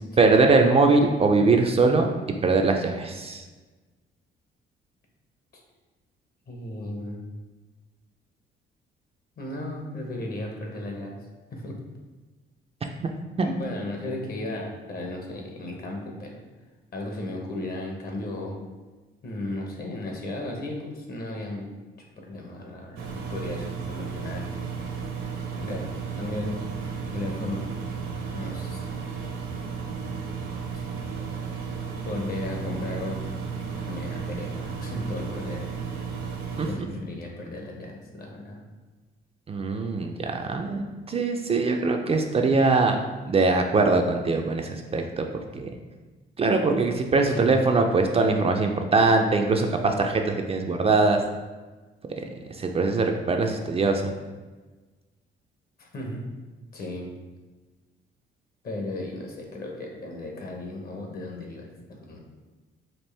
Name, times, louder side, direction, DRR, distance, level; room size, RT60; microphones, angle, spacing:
voice 1, 0.2-2.1 2.4-3.4 36.6-36.9 39.5-43.0 43.3-45.3 45.5-45.7 46.4-51.2 52.2-52.3 52.5-54.1, right 3 dB, 30° right, 3 dB, 0.4 m, -22 dB
voice 2, 6.5-7.3 9.4-11.2 11.5-11.8 13.4-16.4 16.9-18.6 19.2-21.7 22.0-24.5 25.6-25.8 26.2-26.5 27.1-27.6 28.3-28.8 30.7-30.8 31.1-31.5 32.0-33.3 33.9-35.6 36.0-36.1 36.6-38.6 47.3-47.6 55.8-56.3 56.7-57.1 58.6-62.2, left 1 dB, 50° left, 1 dB, 0.9 m, -35 dB
Engine, 23.0-36.7, right 5 dB, 80° right, 0.8 m, -34 dB
4.4 x 2.5 x 3.3 m, 1.3 s
cardioid pair, 90°, 20 cm